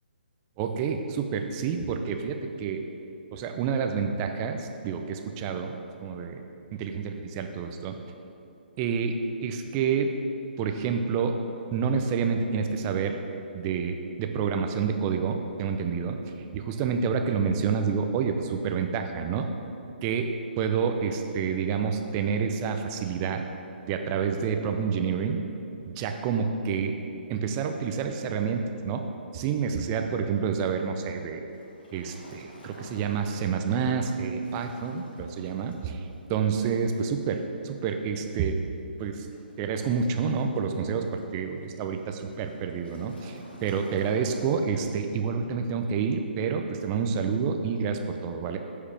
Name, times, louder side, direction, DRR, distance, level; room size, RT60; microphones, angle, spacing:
voice 1, 0.6-2.8 3.3-5.7 6.0-6.4 6.7-8.0 8.8-9.2 9.4-10.1 10.6-11.4 11.7-13.2 13.5-16.2 16.5-19.5 20.0-23.4 23.9-25.4 25.9-27.0 27.3-29.0 29.3-31.4 31.9-38.6 39.0-39.3 39.6-48.6, right 6 dB, 25° right, 5 dB, 0.6 m, -28 dB
Waves surf, 31.5-45.1, left 1 dB, 65° left, 1.8 m, -51 dB
14.0 x 4.8 x 3.4 m, 2.7 s
figure-of-eight pair, 140°, 6 cm